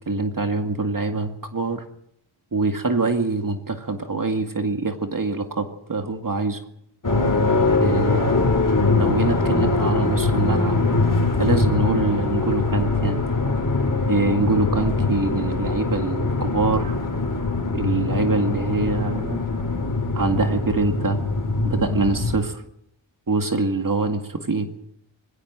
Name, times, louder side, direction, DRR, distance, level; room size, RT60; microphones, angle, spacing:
voice 1, 0.1-1.8 2.5-6.6 7.7-8.5 8.9-10.8 11.4-13.3 14.1-17.0 17.7-19.4 20.1-21.2 21.6-22.6 23.3-24.7, right 3 dB, 40° right, 6 dB, 2.1 m, -24 dB
sound 1, 7.0-22.4, left 3 dB, 40° left, 4.6 m, -22 dB
20.5 x 16.5 x 7.6 m, 0.74 s
wide cardioid pair, 65°, 48 cm